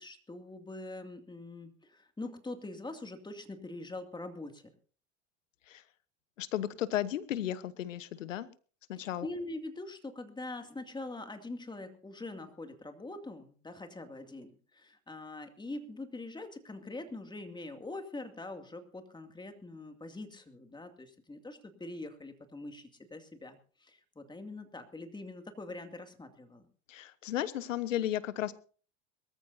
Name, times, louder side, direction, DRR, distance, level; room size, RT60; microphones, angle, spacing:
voice 1, 0.0-4.7 9.0-26.7, left 2 dB, 10° left, 7 dB, 2.4 m, -43 dB
voice 2, 6.4-8.5 8.9-9.3 26.9-28.5, left 12 dB, 90° left, 16 dB, 1.1 m, -34 dB
22.5 x 14.0 x 2.7 m, 0.40 s
hypercardioid pair, 90°, 37 cm